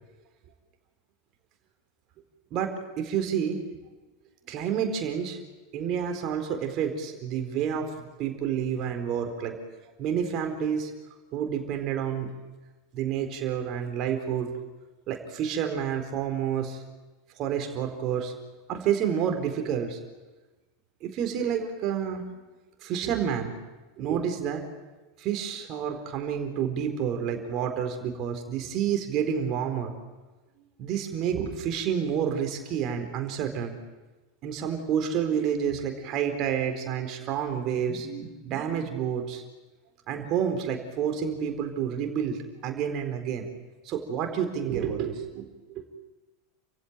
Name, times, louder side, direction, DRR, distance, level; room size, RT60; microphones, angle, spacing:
voice 1, 2.5-3.6 4.5-5.4 5.7-9.6 10.0-10.9 11.3-12.3 12.9-14.5 15.1-16.8 17.4-18.3 18.7-20.0 21.0-22.3 22.8-23.5 24.0-24.6 25.2-29.9 30.8-33.7 34.4-39.4 40.1-43.5 43.8-45.9, right 8 dB, 40° right, 5 dB, 4.2 m, -29 dB
29.5 x 16.0 x 9.2 m, 1.2 s
figure-of-eight pair, 85°, 0 cm